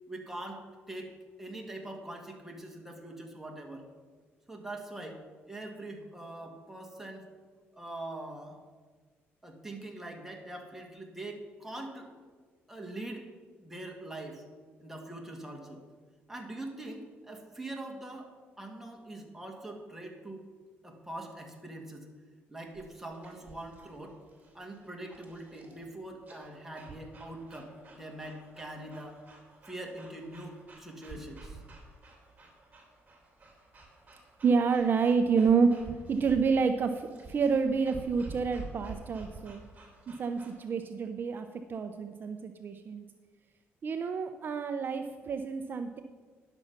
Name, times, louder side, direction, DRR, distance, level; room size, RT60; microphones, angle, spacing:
voice 1, 0.1-1.1 1.4-3.9 4.5-5.2 5.5-7.3 7.7-8.6 9.4-12.1 12.7-13.3 13.6-14.4 14.8-15.8 16.3-20.5 20.8-22.1 22.5-24.2 24.5-29.2 29.7-31.6, right 1 dB, 5° right, 1 dB, 1.9 m, -43 dB
sound 1, 22.7-40.6, right 3 dB, 30° right, 2.9 m, -50 dB
voice 2, 34.4-39.6 40.1-43.0 43.8-46.0, right 5 dB, 45° right, 7 dB, 0.6 m, -28 dB
10.5 x 6.9 x 5.8 m, 1.5 s
cardioid pair, 95°, 5 cm